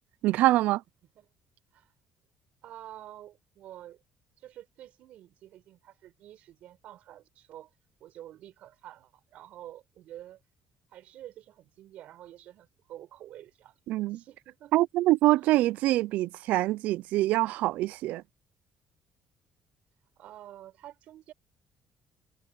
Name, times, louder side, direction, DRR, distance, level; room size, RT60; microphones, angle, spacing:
voice 1, 0.2-0.8 13.9-14.2 14.7-18.2, right 17 dB, 85° right, 0.3 m, -25 dB
voice 2, 2.6-4.0 4.4-7.7 8.0-10.4 10.9-13.8 14.1-14.7 15.4-15.5 20.2-21.3, right 12 dB, 65° right, 6.7 m, -48 dB
cardioid pair, 155°, 2 cm